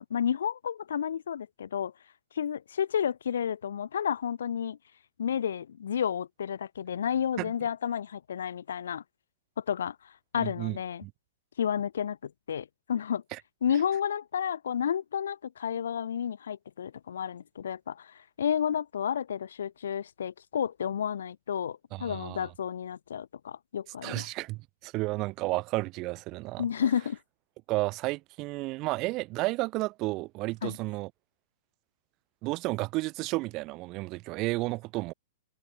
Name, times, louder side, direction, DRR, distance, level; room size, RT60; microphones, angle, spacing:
voice 1, 0.0-1.9 2.3-4.8 5.2-9.0 9.6-9.9 10.3-11.0 11.6-13.2 13.6-24.3 26.6-27.2 30.6-30.8, left 8 dB, 85° left, 1.6 m, -31 dB
voice 2, 10.4-11.1 13.3-13.4 21.9-22.5 24.0-26.6 27.7-31.1 32.4-35.1, right 21 dB, 25° right, 4.7 m, -32 dB
hypercardioid pair, 170°, 0 cm